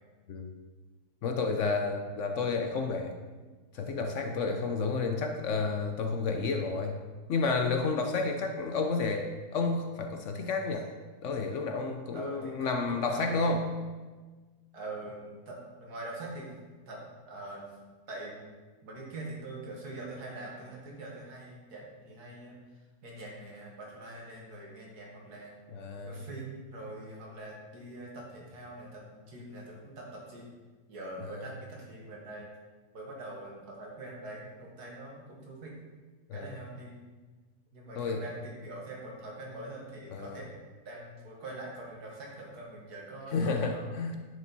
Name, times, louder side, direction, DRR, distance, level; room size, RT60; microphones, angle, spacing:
voice 1, 1.2-3.1 3.7-7.0 7.3-10.9 11.2-13.7 25.7-26.2 31.2-31.5 36.3-36.5 37.9-38.2 40.1-40.4 43.3-44.2, left 4 dB, 60° left, 4 dB, 0.9 m, -31 dB
voice 2, 12.1-13.3 14.7-16.5 16.9-17.8 18.1-18.5 18.8-22.6 23.0-25.5 26.0-30.5 30.9-32.5 32.9-35.8 36.3-37.0 37.7-44.0, right 2 dB, 80° right, -2 dB, 2.2 m, -43 dB
10.0 x 5.2 x 4.1 m, 1.3 s
omnidirectional pair, 1.6 m